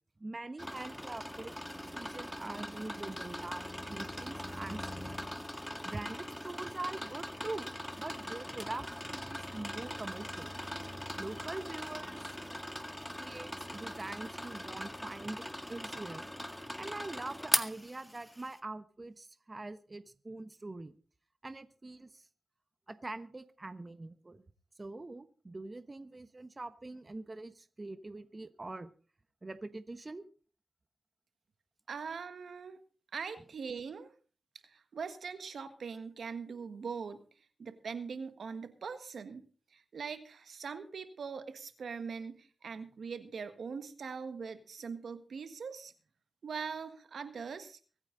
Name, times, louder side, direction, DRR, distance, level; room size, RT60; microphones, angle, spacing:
voice 1, 0.2-1.5 1.8-5.2 5.8-8.8 9.1-10.5 11.2-12.3 13.2-15.4 15.7-16.3 16.8-20.9 21.4-22.2 22.9-24.4 24.8-28.9 29.4-30.2, right 2 dB, 35° right, 12 dB, 1.2 m, -43 dB
sound 1, 0.6-18.6, equal, 5° left, 1.8 m, -40 dB
voice 2, 31.9-32.8 33.1-34.1 34.6-37.2 37.6-45.9 46.4-47.8, right 5 dB, 80° right, 10 dB, 1.5 m, -42 dB
24.0 x 9.1 x 3.9 m, 0.38 s
cardioid pair, 55°, 0 cm